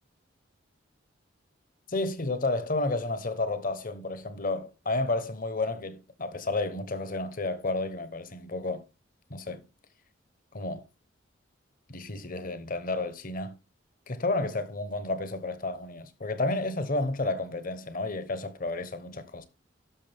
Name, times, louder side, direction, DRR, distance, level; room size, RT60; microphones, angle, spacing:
voice 1, 1.9-8.8 9.3-9.6 10.5-10.9 11.9-13.6 14.1-19.5, left 2 dB, 45° left, 1.1 m, -31 dB
11.5 x 6.5 x 3.5 m
head